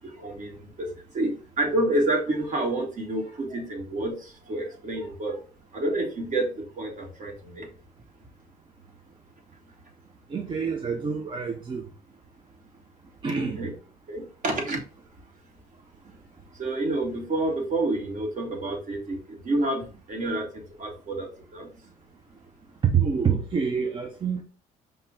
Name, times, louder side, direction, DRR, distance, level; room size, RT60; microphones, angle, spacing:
voice 1, 0.0-5.4 5.7-7.7 13.4-13.7 14.1-14.8 16.5-21.7, right 2 dB, 45° right, 1 dB, 1.6 m, -29 dB
voice 2, 10.3-11.8 13.2-13.6 22.9-24.4, right 6 dB, 30° right, 3 dB, 0.6 m, -27 dB
5.5 x 2.2 x 3.6 m, 0.37 s
cardioid pair, 110°, 17 cm